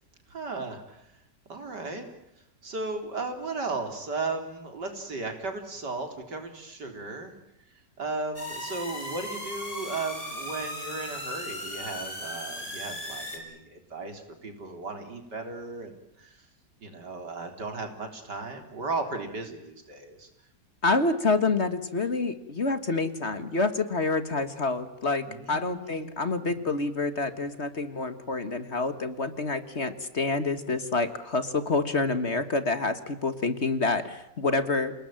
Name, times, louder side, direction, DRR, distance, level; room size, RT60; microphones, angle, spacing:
voice 1, 0.3-1.0 1.5-2.1 2.6-7.3 8.0-16.3 16.8-20.3 25.3-26.2, right 3 dB, 75° right, 6 dB, 4.4 m, -35 dB
sound 1, 8.4-13.4, left 1 dB, 20° left, 5.9 m, -37 dB
voice 2, 20.8-34.9, left 3 dB, 40° left, 11 dB, 1.8 m, -27 dB
28.5 x 19.5 x 9.0 m, 0.84 s
omnidirectional pair, 1.8 m